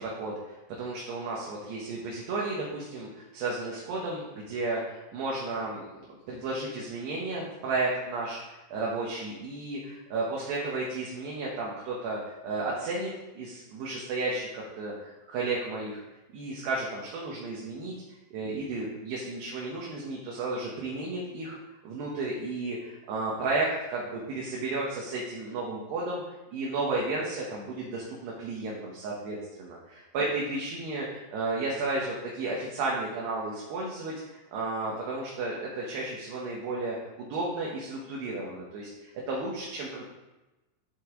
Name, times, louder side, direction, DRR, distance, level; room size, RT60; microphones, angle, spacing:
voice 1, 0.0-16.0 16.3-18.0 18.3-21.6 21.8-26.2 26.5-40.0, right 2 dB, 70° right, -4 dB, 2.9 m, -33 dB
13.5 x 5.5 x 3.9 m, 1.1 s
omnidirectional pair, 5.8 m